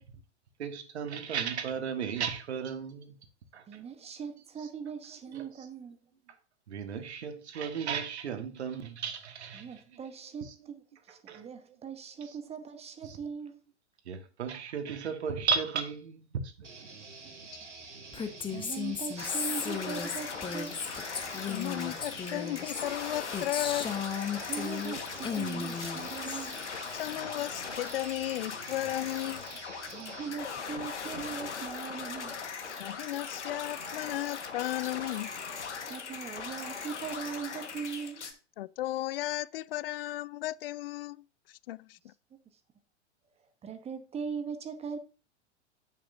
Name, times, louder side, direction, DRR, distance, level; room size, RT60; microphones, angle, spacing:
voice 1, 0.6-3.1 3.5-3.6 5.3-5.5 6.7-10.0 10.4-10.5 11.3-11.4 12.2-12.3 13.0-13.2 14.1-16.7, right 6 dB, 65° right, 1.5 m, -35 dB
voice 2, 3.7-6.0 9.5-13.6 18.5-20.8 24.4-26.6 29.9-32.5 35.9-38.3 43.6-45.0, right 6 dB, 15° right, 0.9 m, -40 dB
sound 1, 16.6-30.4, right 4 dB, 85° right, 1.8 m, -48 dB
Female speech woman speaking, 18.1-25.0 25.2-26.5, left 6 dB, 15° left, 1.0 m, -35 dB
sound 2, 19.2-38.3, left 5 dB, 75° left, 1.5 m, -40 dB
voice 3, 21.5-23.9 26.9-29.4 32.8-35.3 38.6-41.2 41.7-42.1, left 15 dB, 55° left, 0.4 m, -35 dB
9.6 x 8.1 x 2.6 m
figure-of-eight pair, 95°, 35 cm